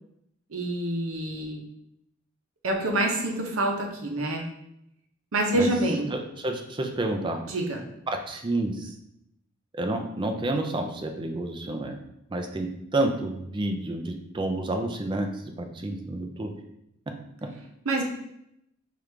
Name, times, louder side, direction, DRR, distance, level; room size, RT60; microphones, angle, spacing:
voice 1, 0.5-1.6 2.6-4.4 5.3-6.1 7.5-7.8 17.9-18.0, right 1 dB, 80° right, 2 dB, 0.7 m, -26 dB
voice 2, 6.1-7.4 8.1-8.9 9.7-12.0 12.3-15.3 15.6-16.5, right 2 dB, 25° right, 4 dB, 0.4 m, -29 dB
4.6 x 2.5 x 3.3 m, 0.80 s
head